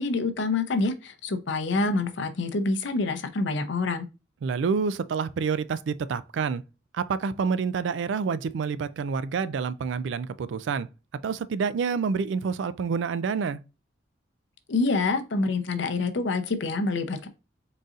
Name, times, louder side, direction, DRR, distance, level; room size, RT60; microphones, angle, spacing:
voice 1, 0.0-4.1 14.7-17.3, left 3 dB, 65° left, 0.6 m, -26 dB
voice 2, 4.4-6.6 6.9-10.9 11.2-13.6, right 5 dB, 70° right, 0.3 m, -28 dB
3.9 x 3.9 x 2.4 m
head